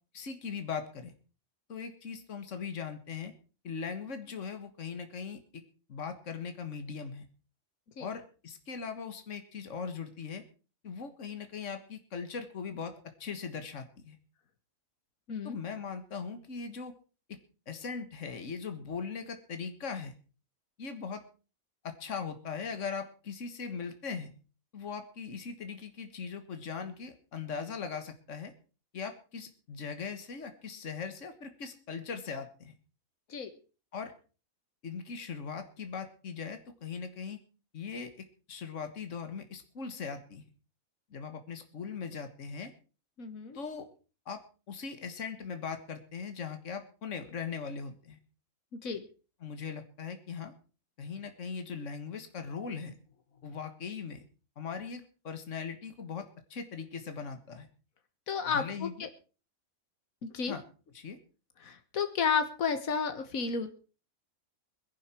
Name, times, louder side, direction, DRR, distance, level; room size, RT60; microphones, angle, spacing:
voice 1, 0.1-1.1 1.7-3.3 3.6-5.6 5.9-7.2 8.0-10.4 10.8-14.2 15.4-16.9 17.3-17.4 17.7-20.1 20.8-21.2 21.8-24.3 24.7-28.5 28.9-32.7 33.9-34.1 34.8-37.4 37.7-40.5 41.1-42.7 43.5-43.9 44.3-44.4 44.7-48.2 49.4-50.5 51.0-53.0 53.4-54.2 54.6-57.7 58.5-58.9 60.5-60.6 60.9-61.2, left 5 dB, 65° left, 7 dB, 1.9 m, -40 dB
voice 2, 43.2-43.6 48.8-49.0 58.3-59.1 60.2-60.5 61.6-63.7, left 6 dB, 90° left, 9 dB, 1.8 m, -32 dB
22.0 x 11.0 x 4.5 m, 0.37 s
omnidirectional pair, 1.4 m